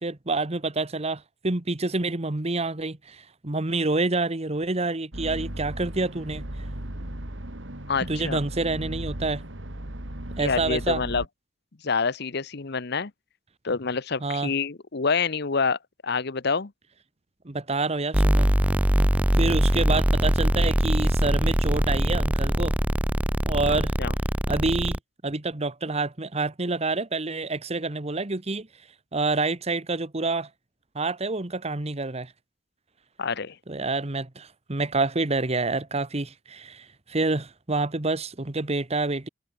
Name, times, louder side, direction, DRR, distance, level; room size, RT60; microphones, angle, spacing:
voice 1, 0.0-6.4 8.0-9.4 10.4-11.0 14.2-14.5 17.4-18.5 19.4-22.8 23.4-23.9 24.5-25.0 25.2-28.7 29.1-30.5 30.9-32.3 33.7-39.3, right 3 dB, 35° right, 1.3 m, -27 dB
sound 1, 5.1-11.3, right 1 dB, 65° right, 3.3 m, -36 dB
voice 2, 7.9-8.4 10.4-11.2 11.8-13.1 13.6-16.7 23.7-24.1 33.2-33.6, left 5 dB, 60° left, 0.9 m, -27 dB
sound 2, 18.1-25.0, equal, 5° right, 1.2 m, -22 dB
head